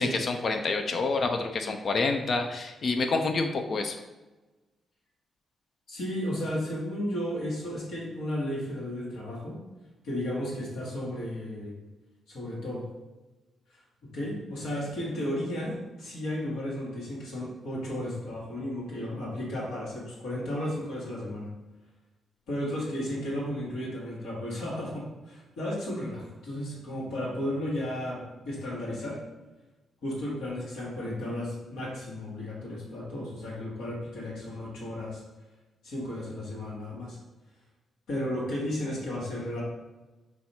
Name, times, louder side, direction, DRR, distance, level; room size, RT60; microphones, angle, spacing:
voice 1, 0.0-4.0, left 3 dB, 55° left, 5 dB, 0.4 m, -28 dB
voice 2, 5.9-9.6 10.0-11.8 12.3-12.9 14.0-21.5 22.5-29.2 30.0-35.2 35.8-37.2 38.1-39.6, left 1 dB, 80° left, -5 dB, 1.4 m, -34 dB
4.1 x 2.4 x 4.0 m, 1.1 s
hypercardioid pair, 50°, 0 cm